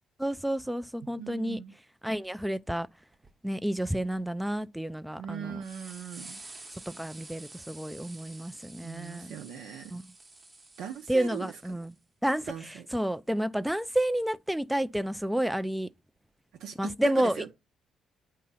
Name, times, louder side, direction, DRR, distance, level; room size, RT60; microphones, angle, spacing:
voice 1, 0.2-1.6 2.0-2.9 3.4-5.6 6.9-9.3 9.9-10.0 11.1-11.9 12.2-15.9 16.8-17.4, right 1 dB, 5° right, 0.3 m, -30 dB
voice 2, 1.2-1.7 5.2-6.4 8.8-10.0 10.8-11.5 12.5-12.9 16.6-17.5, right 8 dB, 90° right, 0.7 m, -39 dB
sound 1, 2.7-2.8 3.1-3.3 3.9-4.6 5.2-5.3 5.6-12.0 14.1-14.2 15.5-15.6, right 2 dB, 25° right, 0.9 m, -50 dB
8.4 x 2.8 x 5.5 m
cardioid pair, 90°, 0 cm